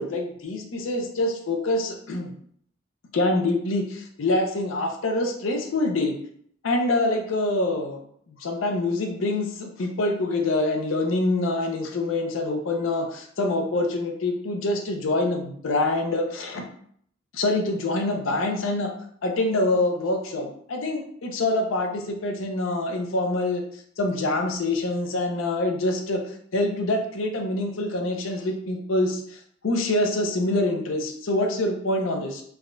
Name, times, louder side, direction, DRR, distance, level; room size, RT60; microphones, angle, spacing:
voice 1, 0.0-2.3 3.1-6.1 6.6-8.0 8.4-16.6 17.3-18.9 19.2-23.6 24.0-26.2 26.5-32.4, left 2 dB, 90° left, 3 dB, 0.5 m, -25 dB
3.4 x 2.1 x 2.4 m, 0.64 s
head